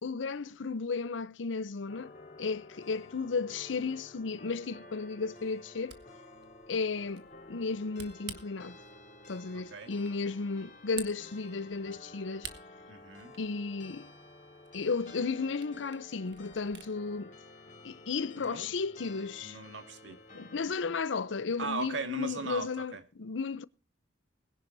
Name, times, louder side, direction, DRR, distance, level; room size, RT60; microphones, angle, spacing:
voice 1, 0.0-2.1 2.4-6.0 6.7-8.8 9.3-12.5 13.4-14.1 14.7-17.3 17.8-19.6 20.1-23.6, left 4 dB, 90° left, 0.7 m, -34 dB
sound 1, 1.9-20.7, left 2 dB, 45° left, 3.7 m, -52 dB
Camera, 5.6-16.9, right 8 dB, 65° right, 1.6 m, -51 dB
voice 2, 12.9-13.3 18.4-18.7 19.4-20.2 21.6-23.0, right 4 dB, 85° right, 1.8 m, -38 dB
21.0 x 11.0 x 2.7 m
head